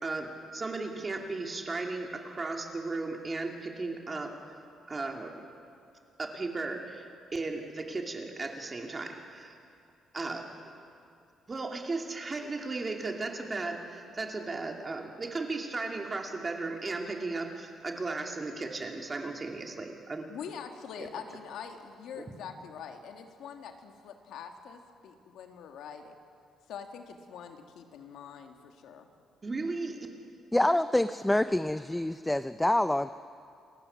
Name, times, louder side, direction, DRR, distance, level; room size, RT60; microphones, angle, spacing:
voice 1, 0.0-4.4 4.9-5.4 6.2-9.5 10.1-10.7 11.5-20.2 21.0-21.1 22.2-22.3 29.4-30.0, right 3 dB, 25° right, 2 dB, 2.7 m, -36 dB
voice 2, 20.3-26.1 26.7-29.1, left 7 dB, 80° left, 5 dB, 1.9 m, -44 dB
voice 3, 30.5-33.1, left 1 dB, 10° left, 12 dB, 0.5 m, -26 dB
29.5 x 15.5 x 7.2 m, 2.4 s
cardioid pair, 105°, 0 cm